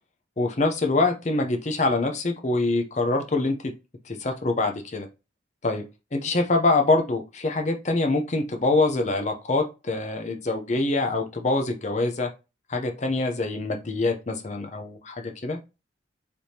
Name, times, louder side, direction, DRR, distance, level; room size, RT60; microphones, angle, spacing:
voice 1, 0.4-3.6 4.0-5.1 5.6-5.8 6.1-12.3 12.7-15.6, left 2 dB, 35° left, 4 dB, 0.6 m, -25 dB
4.6 x 3.4 x 2.8 m, 0.27 s
head